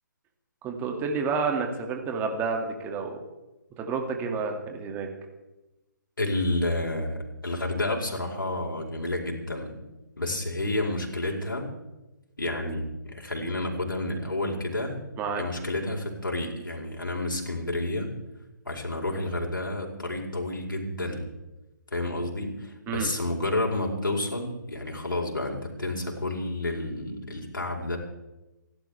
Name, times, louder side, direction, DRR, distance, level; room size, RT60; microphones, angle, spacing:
voice 1, 0.6-3.2 3.8-5.1 15.2-15.4 22.9-23.1, right 5 dB, 15° right, 4 dB, 2.3 m, -29 dB
voice 2, 6.2-9.8 10.2-11.7 12.4-15.0 15.4-18.1 18.6-21.3 21.9-28.0, left 2 dB, 80° left, -1 dB, 4.5 m, -30 dB
28.5 x 12.0 x 3.5 m, 1.0 s
figure-of-eight pair, 140°, 11 cm